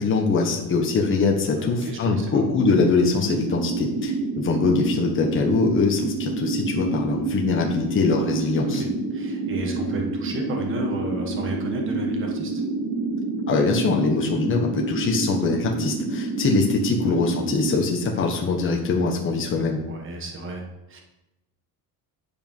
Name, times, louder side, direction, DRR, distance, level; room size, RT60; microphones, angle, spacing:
voice 1, 0.0-8.8 13.5-19.8, left 4 dB, 35° left, 0 dB, 1.3 m, -23 dB
voice 2, 1.6-2.4 8.6-12.6 17.0-17.2 19.9-20.6 20.9-21.0, right 2 dB, 35° right, 2 dB, 1.4 m, -32 dB
sound 1, 3.3-17.8, right 3 dB, 80° right, 2.0 m, -28 dB
10.0 x 5.1 x 5.5 m, 0.94 s
cardioid pair, 175°, 37 cm